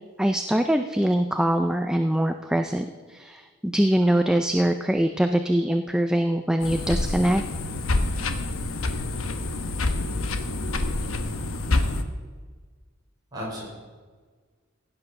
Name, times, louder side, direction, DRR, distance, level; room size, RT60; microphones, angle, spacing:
voice 1, 0.2-7.4, right 1 dB, 5° right, 6 dB, 0.4 m, -23 dB
sound 1, 6.6-12.0, left 2 dB, 80° left, 1.0 m, -27 dB
voice 2, 13.3-13.6, equal, 20° right, -5 dB, 5.2 m, -36 dB
16.0 x 9.3 x 5.8 m, 1.5 s
head